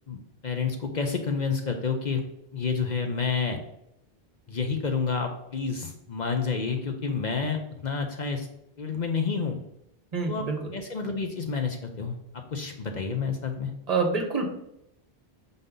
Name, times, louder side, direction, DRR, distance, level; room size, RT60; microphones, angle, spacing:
voice 1, 0.1-2.2 2.5-3.6 4.5-8.5 8.8-9.6 10.3-10.5 10.7-13.7, left 5 dB, 50° left, 5 dB, 0.7 m, -29 dB
voice 2, 10.1-10.6 13.9-14.5, right 4 dB, 40° right, 2 dB, 1.2 m, -26 dB
6.6 x 3.9 x 3.7 m, 0.79 s
omnidirectional pair, 1.0 m